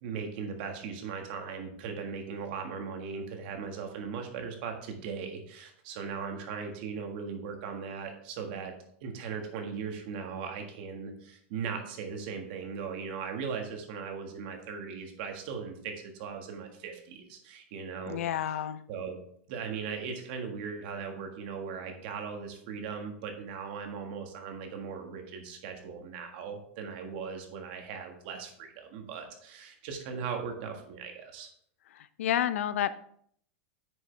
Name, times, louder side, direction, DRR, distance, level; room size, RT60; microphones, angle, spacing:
voice 1, 0.0-8.7 9.0-18.5 18.9-19.2 19.5-31.5, right 6 dB, 45° right, 4 dB, 1.6 m, -38 dB
voice 2, 18.1-18.8 31.9-32.9, left 11 dB, 80° left, 14 dB, 0.6 m, -30 dB
8.8 x 6.9 x 3.3 m, 0.64 s
supercardioid pair, 170°, 7 cm